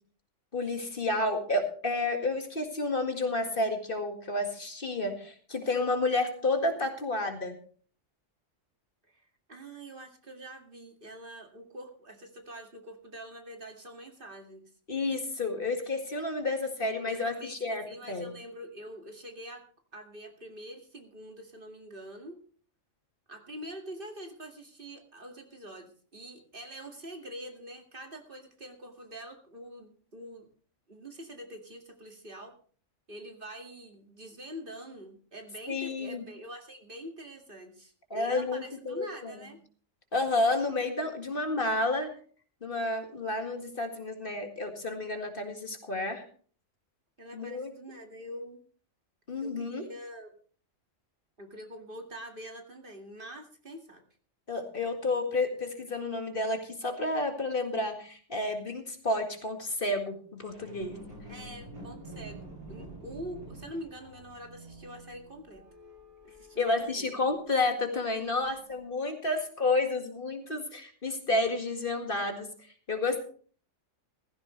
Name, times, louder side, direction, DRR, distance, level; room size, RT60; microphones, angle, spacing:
voice 1, 0.5-7.6 14.9-18.3 35.7-36.2 38.1-39.3 40.1-42.1 42.6-46.2 47.3-47.7 49.3-49.9 54.5-61.0 66.6-72.5 72.9-73.2, left 2 dB, 45° left, 5 dB, 2.1 m, -30 dB
voice 2, 9.5-14.6 17.1-19.7 19.9-22.4 23.3-30.5 30.9-32.5 33.1-39.6 47.2-48.6 49.4-50.3 51.4-54.0 61.3-65.6 66.2-67.2, equal, 45° right, 3 dB, 2.3 m, -45 dB
sound 1, 60.4-67.8 68.4-68.5, right 1 dB, 60° right, 5.7 m, -48 dB
15.5 x 15.5 x 3.2 m, 0.44 s
omnidirectional pair, 1.3 m